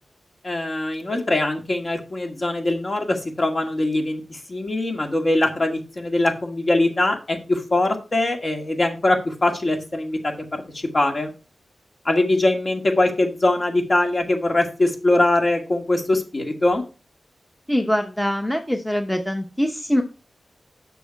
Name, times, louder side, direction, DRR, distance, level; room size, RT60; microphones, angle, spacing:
voice 1, 0.4-10.3 10.7-11.3 12.0-16.8, left 2 dB, 45° left, 3 dB, 2.0 m, -22 dB
voice 2, 17.7-20.0, equal, 5° left, 4 dB, 0.9 m, -23 dB
6.9 x 6.1 x 4.5 m, 0.33 s
wide cardioid pair, 75°, 0 cm